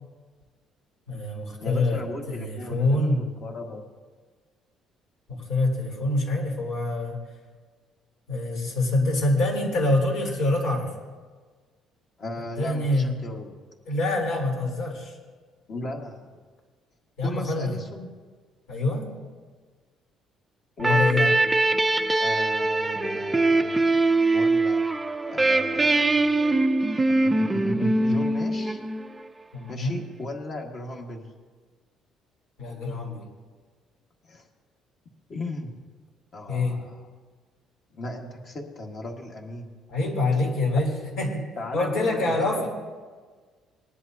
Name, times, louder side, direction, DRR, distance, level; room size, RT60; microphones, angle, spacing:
voice 1, 1.1-3.3 5.3-7.2 8.3-10.9 12.4-13.2 13.9-15.2 17.2-17.8 18.7-19.1 20.8-21.3 29.5-30.0 32.6-33.2 36.5-36.8 39.9-41.4 41.7-42.7, left 2 dB, 75° left, -1 dB, 3.6 m, -25 dB
voice 2, 1.6-3.8 12.2-13.5 15.7-16.3 17.2-18.1 20.8-21.3 22.2-23.9 24.3-24.8 25.3-26.4 27.2-28.8 29.7-31.3 34.3-34.4 35.3-35.7 36.3-37.0 37.9-39.7 41.6-42.3, left 1 dB, 40° left, 1 dB, 1.7 m, -36 dB
sound 1, 20.8-29.3, right 2 dB, 10° right, 0.5 m, -22 dB
20.5 x 11.0 x 2.8 m, 1.5 s
cardioid pair, 140°, 0 cm